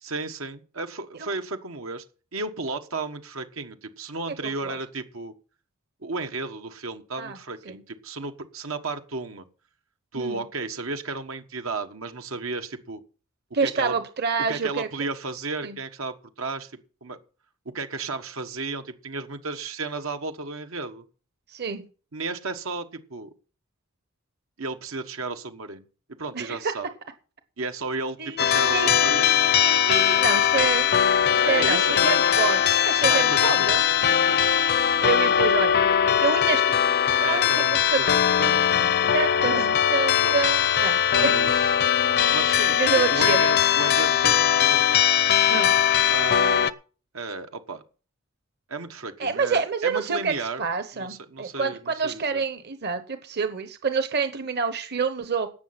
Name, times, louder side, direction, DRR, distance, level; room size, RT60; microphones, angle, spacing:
voice 1, 0.0-2.0 2.3-5.3 6.0-9.4 10.1-13.0 13.6-13.9 14.5-16.7 17.0-17.2 17.6-21.0 22.1-23.3 24.6-25.9 26.2-26.9 27.6-29.3 30.5-30.8 31.4-32.3 33.1-34.9 37.2-39.5 40.2-40.4 41.1-41.7 42.3-45.0 46.1-46.7 47.1-47.8 48.7-50.6 50.9-52.4, right 3 dB, 85° right, 7 dB, 1.4 m, -33 dB
voice 2, 4.4-4.7 7.2-7.4 7.7-7.8 10.1-10.4 13.5-14.9 15.6-15.8 21.5-21.8 26.3-26.7 28.2-30.9 31.5-33.8 35.0-35.8 36.0-36.8 37.2-38.2 39.1-41.3 42.7-43.4 45.5-45.7 49.2-55.5, right 5 dB, 55° right, 10 dB, 1.1 m, -28 dB
sound 1, 28.4-46.7, left 9 dB, 50° left, 0.6 m, -20 dB
17.5 x 6.6 x 6.0 m, 0.38 s
head